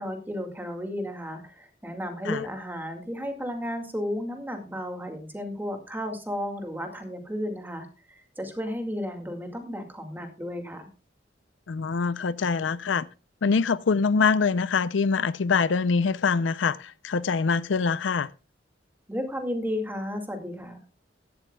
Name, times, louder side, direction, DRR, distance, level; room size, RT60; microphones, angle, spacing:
voice 1, 0.0-10.9 19.1-20.8, equal, 10° right, 2.1 m, -33 dB
voice 2, 11.7-13.0 13.4-18.3, left 5 dB, 85° left, 0.5 m, -24 dB
16.0 x 12.0 x 2.3 m
head